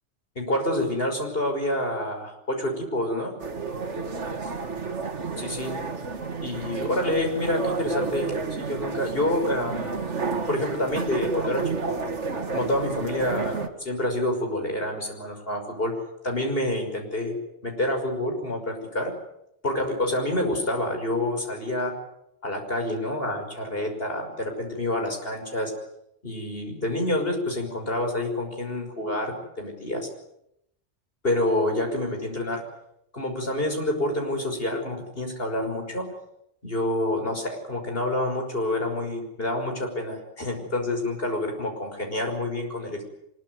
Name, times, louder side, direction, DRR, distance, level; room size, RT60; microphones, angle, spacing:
voice 1, 0.4-3.3 5.4-5.8 6.4-10.0 10.5-12.0 12.5-16.0 16.2-17.3 17.6-19.1 19.6-21.9 22.4-25.7 26.2-30.1 31.2-32.6 33.1-36.1 36.6-43.0, left 1 dB, 50° left, 3 dB, 6.0 m, -28 dB
sound 1, 3.4-13.7, right 4 dB, 75° right, 2.3 m, -31 dB
24.0 x 21.5 x 9.6 m, 0.81 s
omnidirectional pair, 1.2 m